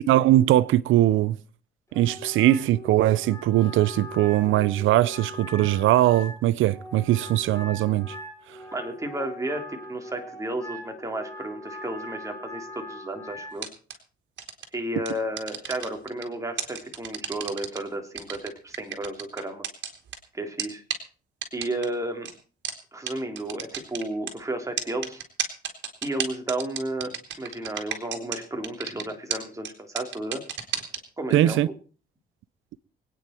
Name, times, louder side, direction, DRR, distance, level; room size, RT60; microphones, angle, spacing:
voice 1, 0.1-1.4 1.9-8.2 31.3-31.7, right 14 dB, 80° right, 0.6 m, -21 dB
Wind instrument woodwind instrument, 1.9-13.6, left 1 dB, 15° left, 3.9 m, -41 dB
voice 2, 8.7-13.7 14.7-19.6 20.3-20.8 21.5-22.3 22.9-25.2 26.0-30.4 31.2-31.6, right 1 dB, 15° right, 3.3 m, -32 dB
sound 1, 13.6-13.9 14.4-14.6 15.0-16.2 16.6-17.8 18.2-20.2 20.6-20.7 20.9-21.0 21.4-21.9 22.2-22.3 22.6-22.7 23.1-23.2 23.4-24.3 24.8-28.4 28.6-29.0 29.3-29.4 29.6-29.7 30.0-31.0, right 9 dB, 65° right, 3.1 m, -31 dB
24.5 x 9.4 x 4.5 m
cardioid pair, 90°, 20 cm